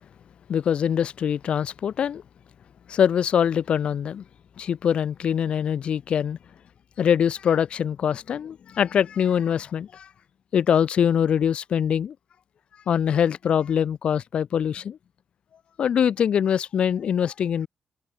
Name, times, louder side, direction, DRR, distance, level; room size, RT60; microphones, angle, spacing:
voice 1, 0.5-2.2 2.9-4.2 4.6-6.4 7.0-10.1 10.5-12.1 12.9-15.0 15.8-17.7, left 8 dB, 60° left, 1.0 m, -23 dB
wide cardioid pair, 150°, 2 cm